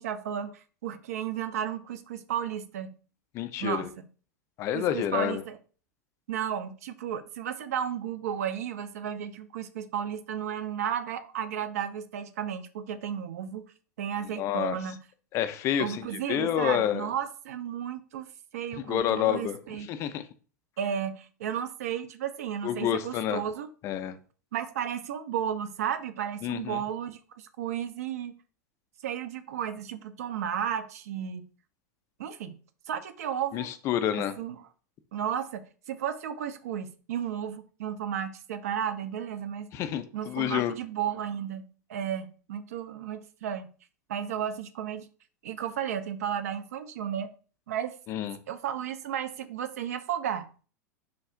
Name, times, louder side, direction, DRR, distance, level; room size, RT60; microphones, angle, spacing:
voice 1, 0.0-2.9 3.6-4.1 4.7-5.6 6.3-13.7 14.0-15.0 15.8-18.3 18.5-19.9 20.8-23.7 24.5-28.3 29.0-31.4 32.2-32.6 32.9-33.7 34.2-34.7 35.1-39.7 40.1-43.7 44.1-45.1 45.4-47.3 47.7-47.9 48.5-50.5, right 9 dB, 60° right, 0.4 m, -33 dB
voice 2, 3.3-3.9 4.6-5.4 14.4-14.8 15.3-16.0 16.3-17.1 18.9-19.6 19.9-20.2 22.6-23.4 23.8-24.2 26.4-26.8 33.5-34.3 39.7-40.7 48.1-48.4, left 11 dB, 30° left, 0.3 m, -28 dB
3.2 x 2.4 x 3.6 m
figure-of-eight pair, 85°, 9 cm